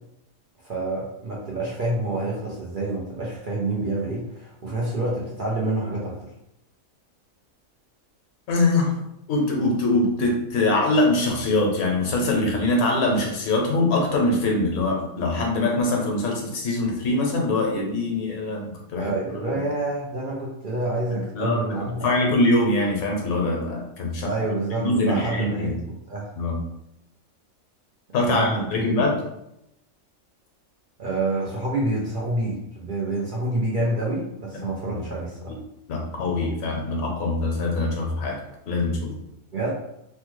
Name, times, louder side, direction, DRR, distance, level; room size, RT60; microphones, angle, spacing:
voice 1, 0.6-6.2 19.0-22.1 24.2-26.3 28.3-28.9 31.0-35.5 39.5-39.7, right 2 dB, 55° right, -5 dB, 0.6 m, -27 dB
voice 2, 8.5-8.9 9.3-19.1 21.1-21.6 22.0-24.3 24.8-25.8 26.4-26.6 28.1-29.2 34.9-35.0 35.5-35.6 35.9-38.4 38.7-39.1, left 2 dB, 90° left, 0 dB, 1.2 m, -23 dB
3.2 x 2.2 x 3.0 m, 0.82 s
omnidirectional pair, 1.4 m